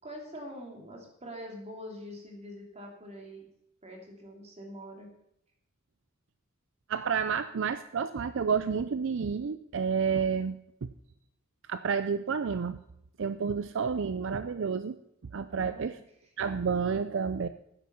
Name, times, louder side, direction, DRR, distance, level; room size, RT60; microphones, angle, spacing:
voice 1, 0.0-3.5 3.8-5.1 15.5-16.0, equal, 35° right, 1 dB, 3.1 m, -44 dB
voice 2, 6.9-10.9 11.7-12.8 13.2-14.9 15.3-16.0 16.4-17.5, right 6 dB, 65° right, 12 dB, 0.5 m, -30 dB
12.0 x 9.9 x 5.6 m, 0.78 s
head